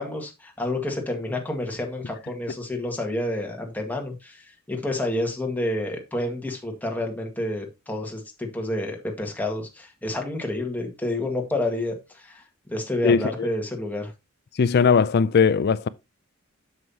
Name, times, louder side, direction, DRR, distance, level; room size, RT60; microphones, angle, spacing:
voice 1, 0.0-12.4 12.7-14.1, left 1 dB, 10° left, 1.8 m, -29 dB
voice 2, 13.0-13.5 14.6-15.9, left 5 dB, 50° left, 0.4 m, -19 dB
7.8 x 7.4 x 2.8 m
head